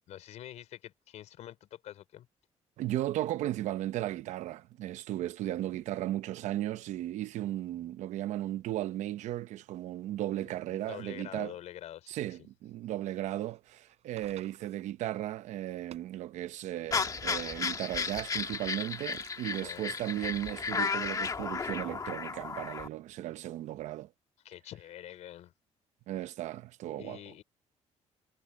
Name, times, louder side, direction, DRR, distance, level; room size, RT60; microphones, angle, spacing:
voice 1, 0.1-2.3 10.4-12.2 19.5-19.9 24.4-25.5 27.0-27.4, left 12 dB, 75° left, 4.1 m, -46 dB
voice 2, 2.8-11.6 12.1-24.1 26.1-27.2, right 14 dB, 85° right, 0.8 m, -36 dB
sound 1, 13.3-21.4, right 11 dB, 65° right, 7.5 m, -58 dB
sound 2, 16.9-22.9, left 5 dB, 30° left, 1.8 m, -34 dB
cardioid pair, 140°, 12 cm